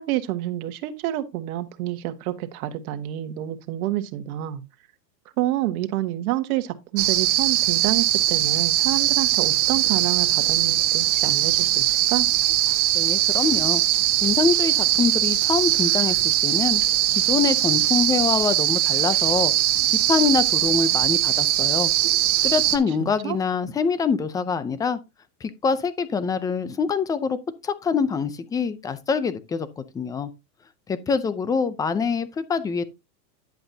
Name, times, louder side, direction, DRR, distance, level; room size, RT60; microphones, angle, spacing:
voice 1, 0.0-4.6 5.4-12.3 23.0-23.4, right 14 dB, 60° right, 1.7 m, -28 dB
sound 1, 7.0-22.8, right 14 dB, 40° right, 1.6 m, -21 dB
voice 2, 12.9-13.8 14.2-16.8 17.1-19.5 20.1-21.9 22.4-25.0 25.4-27.4 27.6-30.3 30.9-32.8, left 5 dB, 10° left, 0.4 m, -25 dB
10.5 x 7.8 x 2.7 m
supercardioid pair, 135°, 50 cm